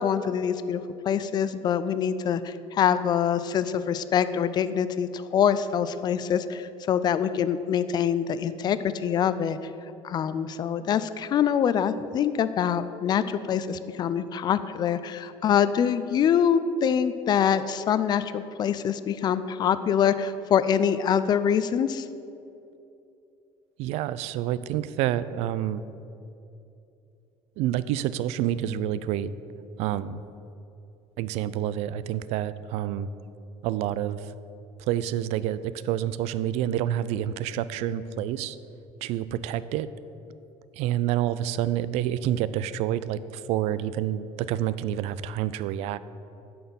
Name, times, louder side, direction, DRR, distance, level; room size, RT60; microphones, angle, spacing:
voice 1, 0.0-9.6 10.0-22.1, left 8 dB, 40° left, 13 dB, 0.4 m, -25 dB
voice 2, 23.8-25.8 27.6-29.3 29.8-30.2 31.2-33.1 33.6-34.2 34.9-38.6 39.0-39.9 40.8-43.2 43.5-46.0, right 11 dB, 70° right, 15 dB, 0.4 m, -28 dB
9.2 x 4.3 x 7.0 m, 2.7 s
cardioid pair, 125°, 11 cm